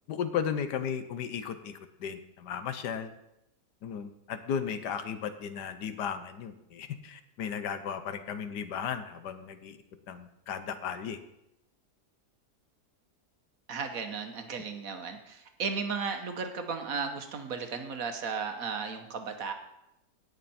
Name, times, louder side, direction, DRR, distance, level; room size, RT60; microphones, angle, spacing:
voice 1, 0.1-3.1 3.8-9.8 10.1-11.2, left 7 dB, 85° left, 10 dB, 1.5 m, -35 dB
voice 2, 13.7-19.5, right 5 dB, 60° right, 6 dB, 1.4 m, -35 dB
17.5 x 6.6 x 4.3 m, 0.85 s
omnidirectional pair, 1.8 m